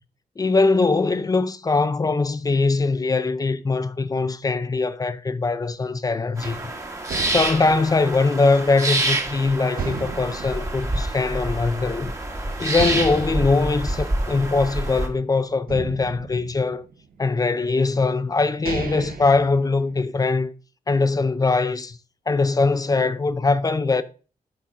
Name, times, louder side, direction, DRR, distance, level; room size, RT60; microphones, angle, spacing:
voice 1, 0.4-6.6 7.3-12.1 12.6-16.8 17.2-20.5 20.9-22.0 22.3-24.0, left 3 dB, 25° left, 0.5 m, -21 dB
sound 1, 6.4-15.1, right 1 dB, 20° right, 1.3 m, -27 dB
sound 2, 6.4-9.2 9.8-11.7 12.1-12.2 12.7-15.1 15.7-17.3 18.0-18.1 18.5-20.3, right 5 dB, 80° right, 0.9 m, -35 dB
8.5 x 3.9 x 4.8 m
wide cardioid pair, 160°, 15 cm